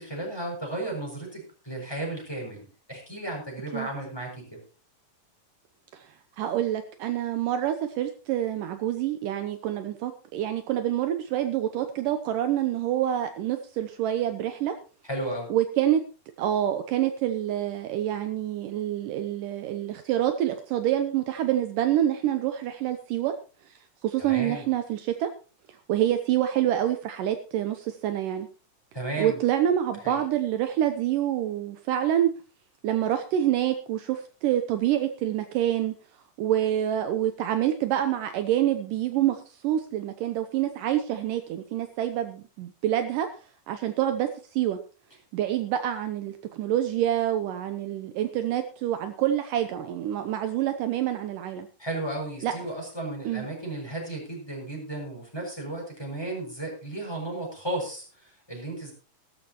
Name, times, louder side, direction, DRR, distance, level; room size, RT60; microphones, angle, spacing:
voice 1, 0.0-4.4 15.1-15.5 24.2-24.7 28.9-29.4 30.0-30.2 51.8-58.9, right 1 dB, 5° left, -1 dB, 6.6 m, -34 dB
voice 2, 6.4-14.8 15.5-16.0 16.4-23.3 23.7-23.8 24.0-25.3 25.9-28.5 29.2-32.3 32.8-36.0 36.4-43.3 43.7-44.8 45.3-51.7 52.4-52.5 53.3-53.5, right 11 dB, 75° right, 8 dB, 2.3 m, -27 dB
17.5 x 13.5 x 3.0 m, 0.36 s
omnidirectional pair, 4.0 m